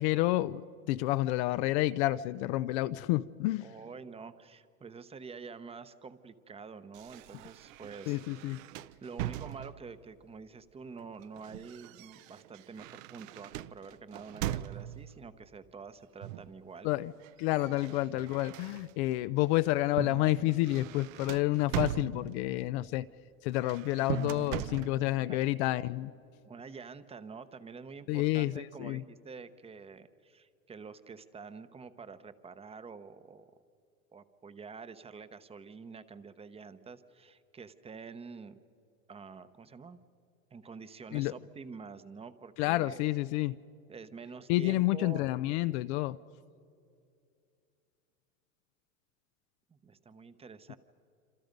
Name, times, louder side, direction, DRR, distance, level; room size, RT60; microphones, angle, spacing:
voice 1, 0.0-3.7 8.1-8.6 16.8-17.1 17.4-23.1 23.4-26.1 28.1-29.0 41.1-41.3 42.6-43.6 44.5-46.2, left 17 dB, 50° left, 14 dB, 0.6 m, -29 dB
voice 2, 3.6-8.2 9.0-16.9 24.0-24.1 25.0-25.4 26.4-33.5 34.1-38.6 39.1-40.0 40.5-43.0 43.9-45.3 49.7-50.8, right 5 dB, 15° right, 12 dB, 0.9 m, -47 dB
sound 1, 6.9-10.0 11.0-15.2 16.2-16.6 16.9-19.2 19.6-19.9 20.2-22.6 23.5-25.0, right 13 dB, 65° right, 0.8 m, -41 dB
Drum, 20.0-21.5 24.1-26.3, right 4 dB, 30° right, 1.4 m, -40 dB
27.0 x 27.0 x 5.3 m, 2.4 s
supercardioid pair, 125°, 43 cm